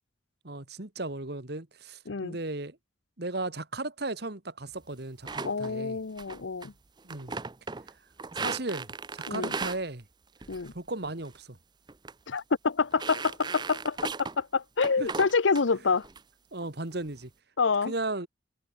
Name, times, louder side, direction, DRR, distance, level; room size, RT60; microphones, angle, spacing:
voice 1, 0.4-2.8 3.2-6.0 7.0-7.3 8.3-10.1 10.7-11.6 15.0-15.1 16.5-17.3 17.9-18.3, right 2 dB, 60° right, 2.0 m, -35 dB
sound 1, 5.3-5.7 6.2-6.7 7.0-7.9 8.2-9.8 10.4-10.7 11.0-11.4 11.9-12.1 12.4-12.5 12.9-14.4 14.8-15.6 16.0-16.2 16.6-17.1, right 4 dB, 20° right, 0.6 m, -37 dB
voice 2, 5.4-6.7 9.3-9.5 10.5-10.7 12.3-16.1 17.6-17.9, left 4 dB, 80° left, 0.8 m, -27 dB
head